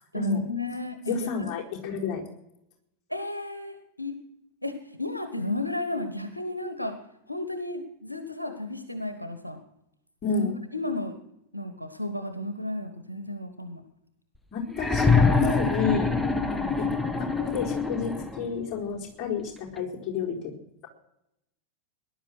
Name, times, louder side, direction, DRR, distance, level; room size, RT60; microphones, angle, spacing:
voice 1, 0.1-1.5 3.1-4.1 4.6-7.0 7.3-9.6 10.3-11.2 11.5-13.8, left 2 dB, 90° left, 8 dB, 1.3 m, -33 dB
voice 2, 1.1-2.2 10.2-10.6 14.5-16.9 17.2-20.5, left 6 dB, 35° left, -3 dB, 4.2 m, -30 dB
sound 1, 14.7-18.5 19.8-19.9, left 4 dB, 5° left, 1.2 m, -25 dB
18.5 x 11.0 x 6.3 m, 0.82 s
figure-of-eight pair, 90°, 0 cm